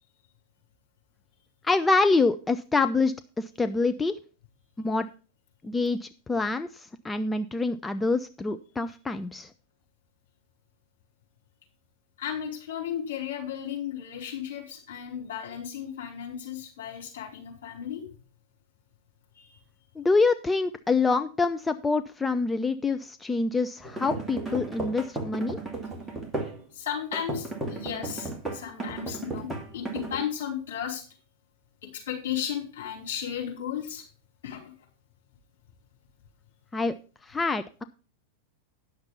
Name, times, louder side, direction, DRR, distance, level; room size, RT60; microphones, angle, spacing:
voice 1, 1.6-4.1 4.8-5.1 5.6-9.5 20.0-25.6 36.7-36.9 37.2-37.8, left 3 dB, 10° left, 9 dB, 0.5 m, -26 dB
voice 2, 12.2-18.0 19.4-19.6 26.7-31.0 31.8-34.0 34.4-34.7, left 9 dB, 60° left, 0 dB, 4.4 m, -34 dB
sound 1, 23.8-26.6 27.1-30.2, right 2 dB, 5° right, 2.2 m, -35 dB
10.5 x 6.6 x 5.5 m, 0.35 s
figure-of-eight pair, 90°, 0 cm